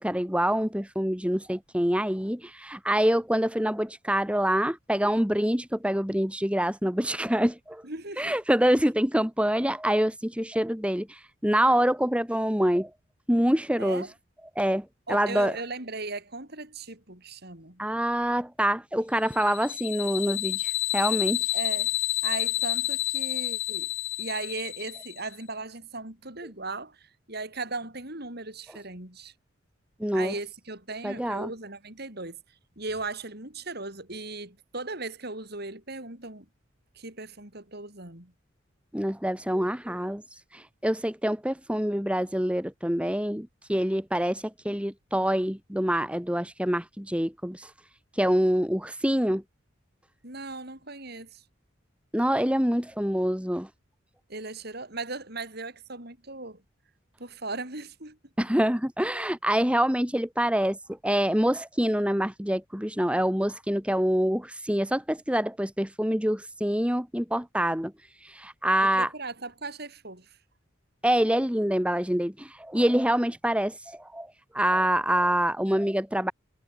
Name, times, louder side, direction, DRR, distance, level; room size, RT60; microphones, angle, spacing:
voice 1, 0.0-7.8 8.2-12.9 13.3-14.0 14.6-15.6 17.8-21.5 30.0-30.3 31.0-31.5 38.9-40.2 40.5-47.7 48.1-49.4 52.1-53.7 58.4-67.9 68.2-69.1 71.0-76.3, equal, 5° right, 2.7 m, -26 dB
voice 2, 7.8-8.3 13.8-14.1 15.1-17.8 21.5-22.0 22.2-23.9 24.2-29.3 30.1-32.4 32.8-36.5 36.9-38.3 50.2-51.4 54.3-56.6 57.2-58.2 68.8-70.4, right 3 dB, 55° right, 7.2 m, -37 dB
sound 1, 19.3-25.3, left 17 dB, 65° left, 1.3 m, -29 dB
head